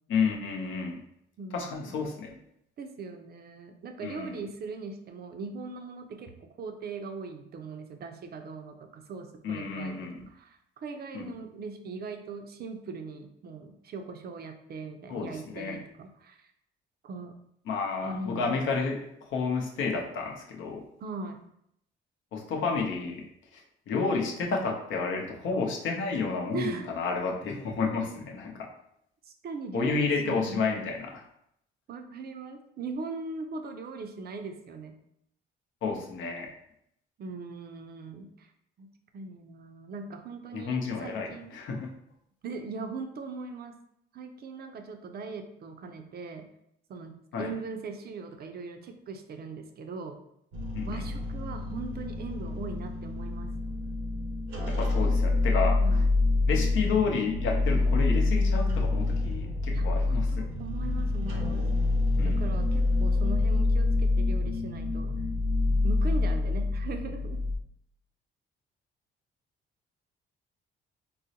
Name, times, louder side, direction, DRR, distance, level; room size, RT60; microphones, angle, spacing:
voice 1, 0.1-1.0 1.5-2.3 4.0-4.4 9.4-10.2 11.1-11.3 15.1-15.8 17.7-20.8 22.3-23.2 23.5-23.6 23.9-28.7 29.7-31.2 35.8-36.5 40.5-41.9 47.3-47.5 50.7-51.0 54.7-55.8 56.5-60.5 62.2-62.4, left 4 dB, 75° left, 1 dB, 0.7 m, -31 dB
voice 2, 1.4-1.9 2.8-16.5 17.0-17.3 18.0-18.6 21.0-21.4 26.5-26.9 29.3-30.7 31.9-35.0 37.2-38.5 38.8-41.6 42.4-43.8 44.1-46.5 46.9-50.2 50.8-53.5 55.8-56.1 59.7-61.7 62.2-65.1 65.8-67.4, right 4 dB, 50° right, 5 dB, 0.5 m, -40 dB
sound 1, 50.5-67.6, left 2 dB, 90° right, 0.7 m, -27 dB
3.8 x 2.0 x 2.7 m, 0.74 s
cardioid pair, 90°, 20 cm